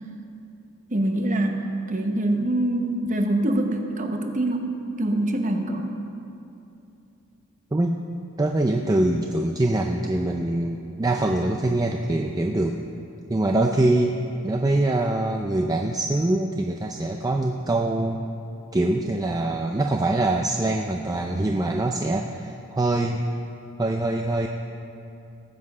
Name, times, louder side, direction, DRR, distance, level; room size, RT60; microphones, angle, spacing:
voice 1, 0.9-1.6 1.9-4.7 5.0-5.9, right 1 dB, 35° right, 4 dB, 0.9 m, -24 dB
voice 2, 7.7-8.0 8.4-12.8 13.3-14.2 14.4-18.2 18.7-23.2 23.8-24.5, right 2 dB, 15° right, 3 dB, 0.4 m, -24 dB
18.5 x 7.6 x 4.8 m, 2.8 s
head